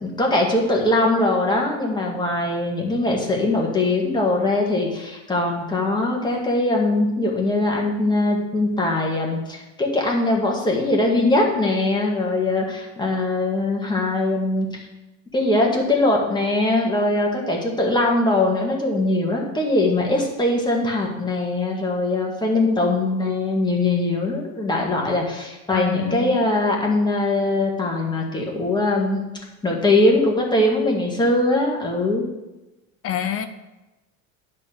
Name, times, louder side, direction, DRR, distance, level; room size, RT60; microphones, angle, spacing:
voice 1, 0.0-14.8 15.3-29.3 29.6-32.3, left 2 dB, 10° left, -1 dB, 2.0 m, -21 dB
voice 2, 25.7-26.4 33.0-33.5, left 10 dB, 35° left, 9 dB, 0.6 m, -26 dB
10.0 x 4.4 x 6.9 m, 1.0 s
supercardioid pair, 125°, 41 cm